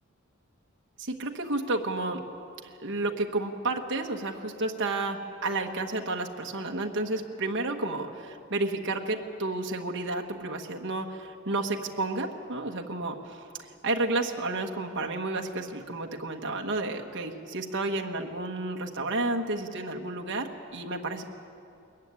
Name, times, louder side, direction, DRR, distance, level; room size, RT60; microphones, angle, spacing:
voice 1, 1.0-2.2 2.6-21.2, right 2 dB, 55° right, 2 dB, 1.4 m, -31 dB
21.0 x 15.0 x 9.7 m, 2.5 s
head